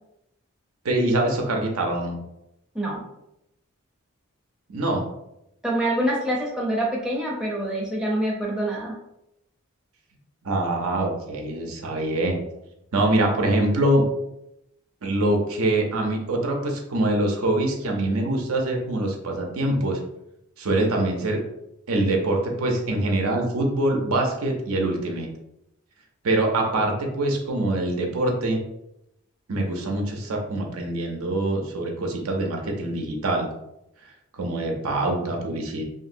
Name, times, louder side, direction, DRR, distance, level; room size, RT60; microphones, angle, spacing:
voice 1, 0.8-2.2 4.7-5.1 10.4-12.4 12.9-14.1 15.0-20.0 20.6-21.4 21.9-25.3 26.2-28.6 29.5-33.5 34.3-35.8, right 1 dB, 75° right, 1 dB, 0.6 m, -24 dB
voice 2, 5.6-9.0, right 1 dB, 5° right, -4 dB, 0.5 m, -26 dB
2.8 x 2.5 x 2.5 m, 0.83 s
head